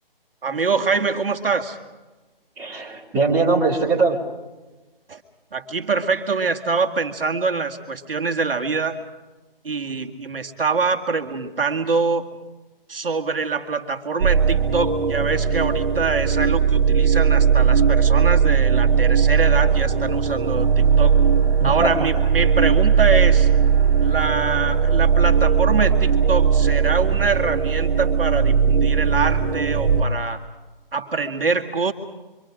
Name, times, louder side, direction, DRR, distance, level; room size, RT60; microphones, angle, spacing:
voice 1, 0.4-1.8 5.1-5.2 5.5-9.0 9.6-12.3 12.9-21.2 21.6-23.5 24.0-30.4 30.9-31.9, right 4 dB, 70° right, 5 dB, 2.2 m, -24 dB
voice 2, 2.6-4.2 21.6-22.1, right 3 dB, 10° right, -6 dB, 2.6 m, -21 dB
sound 1, 14.2-30.0, right 6 dB, 50° right, 1.8 m, -18 dB
27.5 x 25.0 x 5.1 m, 1.2 s
figure-of-eight pair, 155°, 29 cm